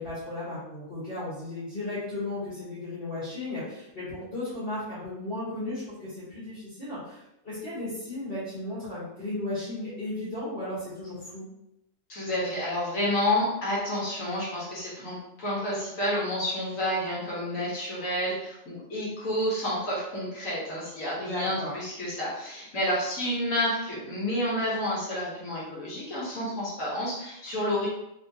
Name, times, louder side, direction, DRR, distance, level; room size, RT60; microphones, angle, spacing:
voice 1, 0.0-11.5 21.2-21.7, left 2 dB, 40° left, -12 dB, 1.8 m, -35 dB
voice 2, 12.1-27.9, left 1 dB, 70° left, -6 dB, 1.5 m, -30 dB
3.5 x 3.4 x 2.7 m, 0.85 s
omnidirectional pair, 1.5 m